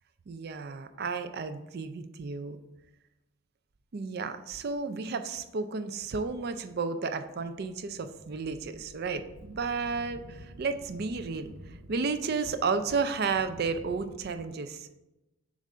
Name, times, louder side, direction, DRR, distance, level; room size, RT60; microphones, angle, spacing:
voice 1, 0.3-2.6 3.9-15.0, right 4 dB, 45° right, 9 dB, 0.4 m, -32 dB
sound 1, 7.3-14.1, right 1 dB, 85° right, 0.6 m, -50 dB
7.2 x 2.5 x 5.4 m, 0.98 s
head